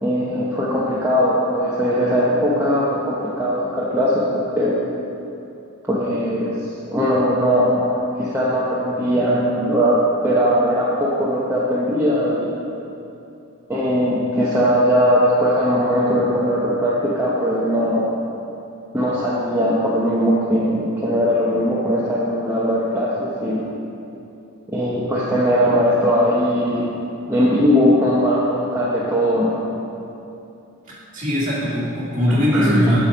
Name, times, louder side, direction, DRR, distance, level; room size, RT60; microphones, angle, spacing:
voice 1, 0.0-4.8 5.9-6.6 6.9-9.9 10.2-12.5 13.7-18.1 18.9-23.6 24.7-26.9 27.3-29.6 32.3-32.9, equal, 10° right, -8 dB, 0.8 m, -19 dB
voice 2, 31.1-33.0, equal, 35° right, -8 dB, 2.1 m, -20 dB
7.2 x 6.8 x 5.0 m, 2.8 s
head